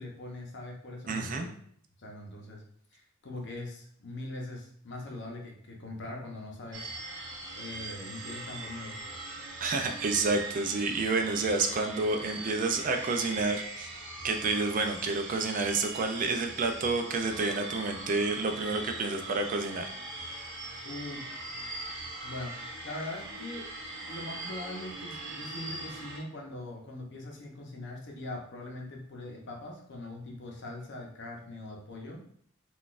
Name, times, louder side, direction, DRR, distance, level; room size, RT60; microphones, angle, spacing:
voice 1, 0.0-1.5 2.0-2.6 2.9-7.2 7.6-8.9 20.8-21.3 22.2-23.7 24.1-32.3, left 2 dB, 60° left, 0 dB, 0.7 m, -42 dB
voice 2, 1.1-1.5 9.6-13.9 14.2-19.9, right 3 dB, 40° right, 5 dB, 0.3 m, -29 dB
sound 1, 6.7-26.2, right 2 dB, 65° right, 0.7 m, -41 dB
3.8 x 2.4 x 2.4 m, 0.64 s
head